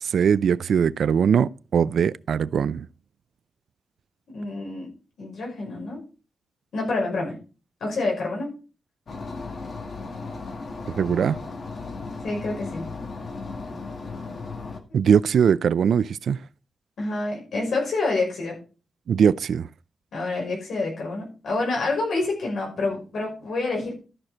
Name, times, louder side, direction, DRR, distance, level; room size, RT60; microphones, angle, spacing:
voice 1, 0.0-2.9 10.9-11.4 14.9-16.4 19.1-19.7, right 7 dB, 75° right, 0.4 m, -21 dB
voice 2, 4.3-4.9 5.2-6.0 6.7-7.4 7.8-8.5 12.2-12.8 17.0-18.5 20.1-23.9, left 3 dB, 80° left, 5.6 m, -27 dB
sound 1, 9.1-14.8, left 3 dB, 50° left, 1.8 m, -35 dB
13.5 x 6.5 x 4.3 m
wide cardioid pair, 180°, 0 cm